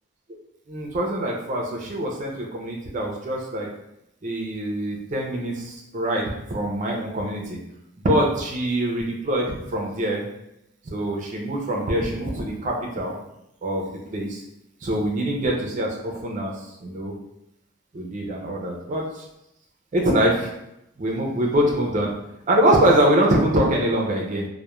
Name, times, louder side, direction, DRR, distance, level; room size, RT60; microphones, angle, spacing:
voice 1, 0.7-3.7 4.2-7.6 8.0-10.2 10.9-13.1 13.6-14.4 14.8-16.5 16.8-17.1 17.9-19.2 19.9-20.5 21.0-22.1 22.5-24.5, right 1 dB, 35° right, -1 dB, 0.4 m, -24 dB
2.2 x 2.1 x 2.9 m, 0.82 s
head